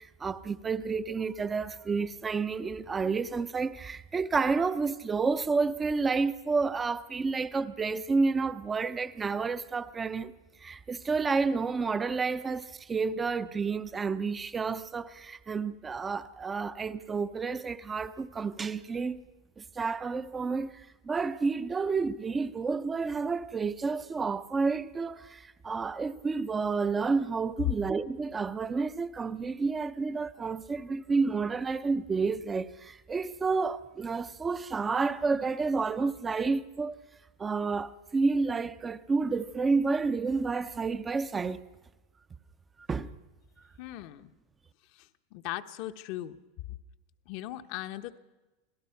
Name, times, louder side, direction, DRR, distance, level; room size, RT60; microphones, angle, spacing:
voice 1, 0.0-10.3 10.6-19.2 19.6-37.0 37.4-41.6 42.9-43.1, right 4 dB, 15° right, 0.7 m, -30 dB
voice 2, 43.8-44.3 44.9-46.4 47.3-48.2, left 15 dB, 55° left, 1.0 m, -39 dB
27.0 x 17.5 x 5.8 m
supercardioid pair, 140°, 0 cm